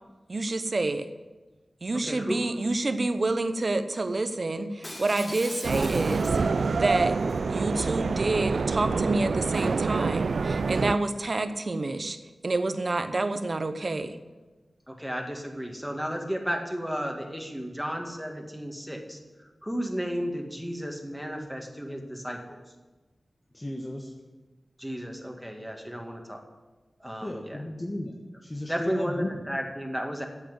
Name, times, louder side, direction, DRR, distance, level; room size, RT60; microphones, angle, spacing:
voice 1, 0.3-1.1 1.8-6.3 6.7-7.2 7.5-12.2 12.4-14.2, right 2 dB, 55° right, 10 dB, 0.9 m, -28 dB
voice 2, 2.1-2.6 14.9-19.2 19.6-22.4 24.8-26.4 27.0-27.6 28.7-30.2, equal, 5° right, 2 dB, 2.1 m, -33 dB
Shatter, 4.8-6.6 7.1-7.4, left 1 dB, 45° left, 3.2 m, -41 dB
sound 1, 5.6-11.0, right 4 dB, 80° right, 0.3 m, -26 dB
voice 3, 23.5-24.1 27.2-28.1 28.4-29.3, left 1 dB, 25° left, 1 dB, 1.2 m, -34 dB
8.9 x 7.9 x 7.7 m, 1.2 s
cardioid pair, 50°, 0 cm